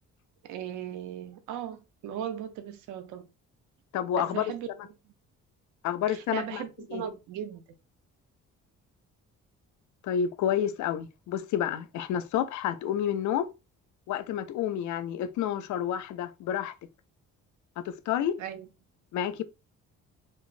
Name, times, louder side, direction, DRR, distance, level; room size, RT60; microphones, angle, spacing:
voice 1, 0.4-3.3 4.2-4.7 6.1-7.6 18.4-18.7, right 9 dB, 85° right, 0.5 m, -37 dB
voice 2, 3.9-4.4 5.8-6.6 6.9-7.0 10.0-13.5 14.1-16.7 17.8-18.3 19.1-19.4, left 9 dB, 75° left, 0.5 m, -29 dB
3.0 x 2.4 x 2.4 m
cardioid pair, 90°, 30 cm